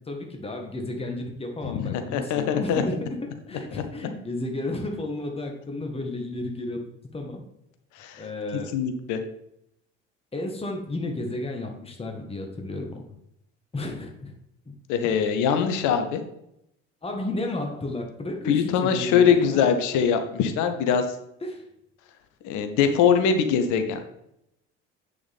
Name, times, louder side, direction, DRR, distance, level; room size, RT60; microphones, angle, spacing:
voice 1, 0.0-6.8 7.1-7.4 8.2-8.7 10.3-13.0 13.7-14.3 14.7-14.8 17.0-19.6 21.4-21.6, left 2 dB, 15° left, 3 dB, 1.6 m, -32 dB
voice 2, 1.6-2.8 8.0-8.2 8.7-9.2 14.9-16.2 18.5-21.0 22.4-24.0, left 7 dB, 55° left, 7 dB, 1.1 m, -22 dB
8.1 x 6.8 x 3.6 m, 0.79 s
figure-of-eight pair, 55°, 35 cm